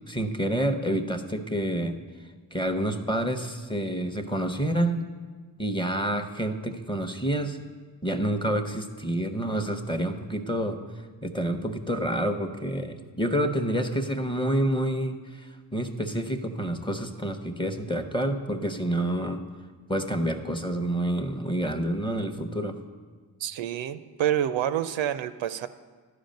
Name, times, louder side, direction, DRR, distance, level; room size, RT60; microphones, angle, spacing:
voice 1, 0.1-2.0 2.5-5.0 5.6-7.6 8.0-10.8 11.2-19.4 19.9-22.8, right 1 dB, 10° left, 6 dB, 0.7 m, -28 dB
voice 2, 23.4-25.7, right 10 dB, 65° right, 12 dB, 0.5 m, -28 dB
11.5 x 5.0 x 5.2 m, 1.5 s
supercardioid pair, 45°, 49 cm